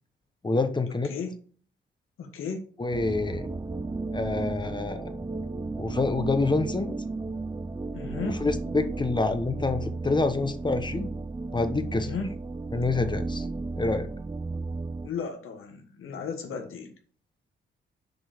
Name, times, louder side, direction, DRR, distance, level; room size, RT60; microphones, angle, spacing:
voice 1, 0.4-1.1 2.8-3.5 4.1-5.1 5.8-6.9 8.2-11.1 11.5-12.1 12.7-13.5 13.8-14.1, left 3 dB, 20° left, 8 dB, 1.0 m, -27 dB
voice 2, 2.2-2.6 7.9-8.4 11.9-12.3 15.0-16.9, left 5 dB, 90° left, 4 dB, 1.5 m, -35 dB
sound 1, 2.9-15.1, right 3 dB, 15° right, 0.5 m, -34 dB
6.5 x 5.3 x 5.0 m, 0.43 s
cardioid pair, 105°, 21 cm